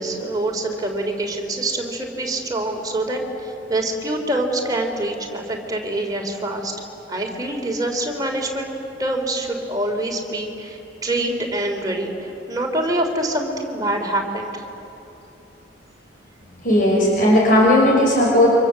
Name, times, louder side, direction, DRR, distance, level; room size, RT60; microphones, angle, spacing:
voice 1, 0.0-6.7 7.1-8.7 9.0-14.6, right 1 dB, 20° right, 1 dB, 3.7 m, -25 dB
voice 2, 16.6-18.5, left 1 dB, 45° left, -3 dB, 6.1 m, -15 dB
29.0 x 26.0 x 7.7 m, 3.0 s
head